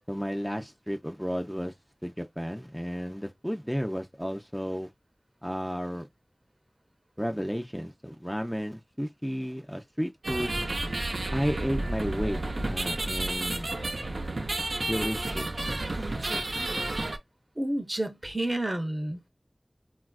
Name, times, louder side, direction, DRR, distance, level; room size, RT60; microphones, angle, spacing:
voice 1, 0.1-1.7 2.0-4.9 5.4-6.1 7.2-10.7 11.3-13.8 14.9-15.8, equal, ahead, 0.4 m, -33 dB
sound 1, 10.2-17.2, right 2 dB, 90° right, 0.4 m, -31 dB
voice 2, 17.6-19.3, right 1 dB, 40° right, 0.6 m, -30 dB
4.1 x 2.3 x 2.3 m
wide cardioid pair, 40°, 0 cm